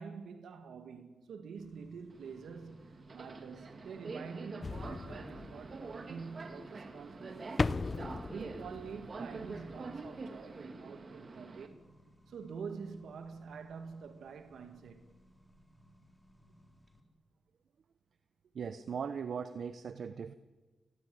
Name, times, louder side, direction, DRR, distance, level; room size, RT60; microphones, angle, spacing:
voice 1, 0.0-7.7 8.2-11.8 12.3-15.0, right 5 dB, 80° right, 2.0 m, -47 dB
Accelerating revving vroom, 1.6-17.0, right 1 dB, 5° left, 4.2 m, -61 dB
Subway metro underground, 2.1-11.7, right 3 dB, 45° right, 2.6 m, -46 dB
sound 1, 4.6-6.1 7.6-9.5 9.8-9.9, left 3 dB, 35° left, 0.8 m, -37 dB
voice 2, 18.5-20.3, right 6 dB, 65° right, 1.0 m, -39 dB
30.0 x 18.0 x 9.6 m
cardioid pair, 100°, 0 cm